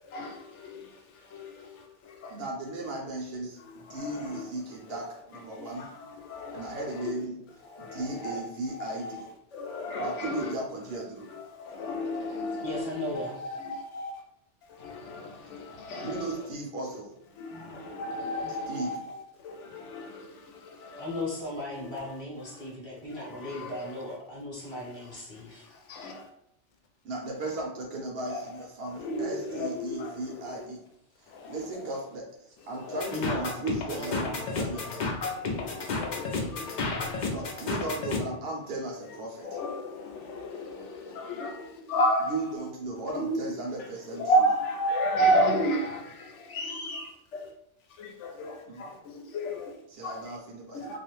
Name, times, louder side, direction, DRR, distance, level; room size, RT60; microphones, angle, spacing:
voice 1, 0.0-2.4 3.6-4.5 4.9-5.1 5.5-7.1 7.6-9.1 9.5-10.5 10.9-14.1 14.7-16.3 17.3-21.2 21.8-22.2 22.6-22.7 23.1-24.0 24.7-26.2 28.3-28.5 28.9-30.7 31.3-31.9 32.7-33.4 34.5-35.0 35.3-37.2 39.4-42.4 43.1-43.5 44.1-47.5 48.0-49.7 50.0-50.3 50.7-51.0, equal, 80° left, 0.9 m, -33 dB
voice 2, 2.3-5.9 6.5-7.3 7.8-9.2 9.9-11.3 16.0-17.1 18.7-18.9 27.0-30.8 31.5-32.3 32.7-35.1 37.3-39.5 42.3-44.2 48.7-49.0 49.9-51.0, right 2 dB, 65° right, 0.7 m, -36 dB
voice 3, 12.6-13.4 21.0-25.7 33.1-33.6 33.9-34.9, left 1 dB, 25° left, 0.7 m, -36 dB
sound 1, 33.0-38.2, left 3 dB, 60° left, 0.5 m, -31 dB
2.4 x 2.1 x 2.9 m
omnidirectional pair, 1.2 m